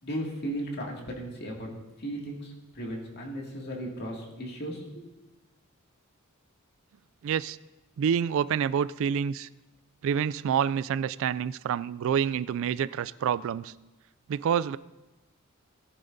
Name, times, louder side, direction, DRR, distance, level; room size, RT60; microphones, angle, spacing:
voice 1, 0.0-1.7 2.0-5.1, right 1 dB, 50° left, -1 dB, 2.2 m, -36 dB
voice 2, 7.2-7.6 8.0-9.5 10.0-13.7 14.3-14.8, right 8 dB, 65° right, 18 dB, 0.3 m, -27 dB
18.0 x 10.5 x 2.7 m, 1.1 s
head